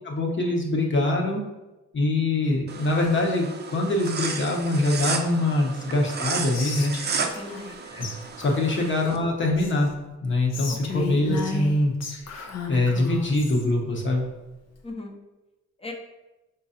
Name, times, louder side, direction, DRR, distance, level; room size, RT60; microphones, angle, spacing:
voice 1, 0.0-1.4 1.9-6.9 8.0-8.1 8.4-9.9 10.2-14.2, left 2 dB, 40° left, 0 dB, 1.1 m, -24 dB
sound 1, 2.7-9.2, right 5 dB, 35° right, 0.5 m, -33 dB
Whispering, 6.5-7.7 8.0-8.2 8.4-9.9 10.5-13.7, left 5 dB, 55° left, 0.8 m, -34 dB
voice 2, 7.2-7.8 8.8-9.0 10.9-11.2 14.8-15.2 15.8-15.9, left 2 dB, 20° left, 2 dB, 0.8 m, -39 dB
4.6 x 3.9 x 2.8 m, 1.0 s
cardioid pair, 90°, 31 cm